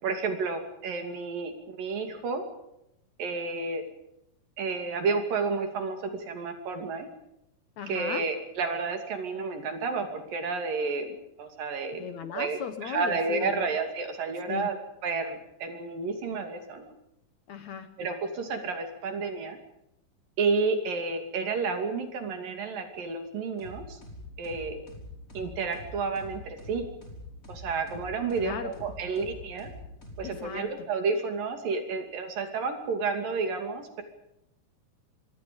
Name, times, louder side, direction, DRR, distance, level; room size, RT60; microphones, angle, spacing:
voice 1, 0.0-2.4 3.2-3.8 4.6-7.1 7.9-12.1 12.3-14.8 15.0-16.9 18.0-19.6 20.4-24.0 24.4-24.8 25.3-26.9 27.5-29.7 30.2-34.0, right 4 dB, 70° right, 6 dB, 4.3 m, -31 dB
voice 2, 7.8-8.3 12.0-13.7 14.5-14.7 17.5-18.0 28.4-28.8 30.2-30.7, left 7 dB, 65° left, 10 dB, 2.1 m, -37 dB
sound 1, 23.6-30.7, left 1 dB, 20° left, 5.8 m, -45 dB
26.5 x 24.0 x 5.4 m, 0.82 s
omnidirectional pair, 4.2 m